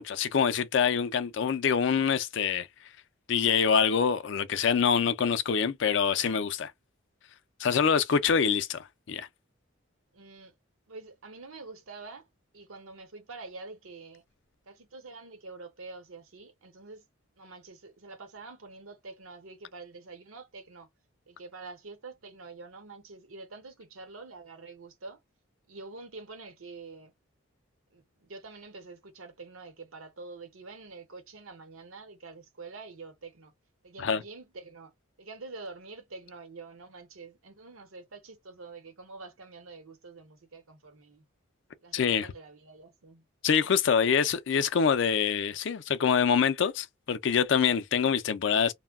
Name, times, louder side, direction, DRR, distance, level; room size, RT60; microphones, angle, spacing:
voice 1, 0.0-2.7 3.3-6.7 7.6-9.3 34.0-34.2 41.9-42.3 43.4-48.7, left 6 dB, 60° left, 0.4 m, -25 dB
voice 2, 10.1-10.5 10.9-12.3 12.5-14.2 14.7-17.1 17.4-20.9 21.3-25.2 25.7-27.1 27.9-33.5 33.8-34.9 35.2-41.2 41.8-43.2, right 3 dB, 80° right, 0.8 m, -46 dB
2.2 x 2.1 x 3.4 m
head